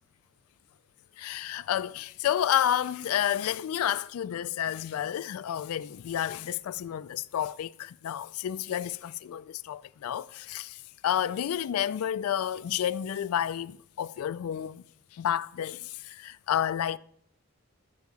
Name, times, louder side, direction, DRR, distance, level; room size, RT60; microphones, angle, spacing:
voice 1, 1.2-14.8 15.1-17.0, left 10 dB, 80° left, 0.3 m, -30 dB
12.5 x 8.2 x 4.8 m
head